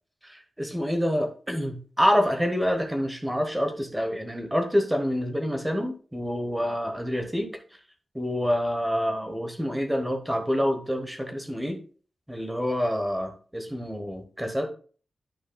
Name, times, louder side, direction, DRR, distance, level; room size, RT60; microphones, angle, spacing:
voice 1, 0.2-7.5 8.1-11.8 12.3-14.7, equal, 5° right, 5 dB, 1.0 m, -27 dB
10.0 x 5.6 x 2.3 m, 0.40 s
wide cardioid pair, 175°, 0 cm